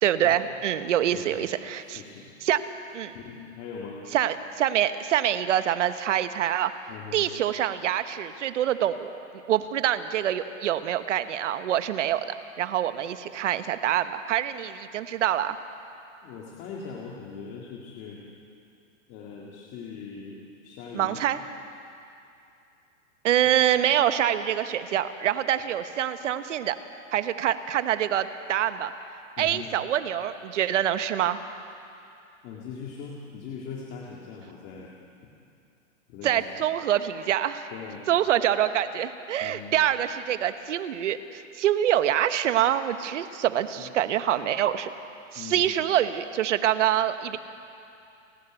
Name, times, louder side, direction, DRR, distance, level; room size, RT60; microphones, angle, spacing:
voice 1, 0.0-2.0 2.4-2.6 2.9-3.1 4.1-6.7 7.1-9.1 9.5-15.6 20.9-21.4 23.2-26.8 27.1-28.9 29.4-31.4 36.2-37.7 38.1-44.9 45.3-47.4, right 11 dB, 65° right, 11 dB, 1.2 m, -25 dB
voice 2, 1.1-1.5 1.8-2.3 3.1-4.0 6.9-7.3 16.2-18.2 19.1-21.2 23.3-23.5 29.4-29.7 32.4-34.9 36.1-36.5 37.7-38.1 39.4-39.7 43.8-43.9 45.3-45.7, left 6 dB, 25° left, -3 dB, 2.0 m, -40 dB
30.0 x 11.5 x 9.1 m, 2.6 s
hypercardioid pair, 165°, 39 cm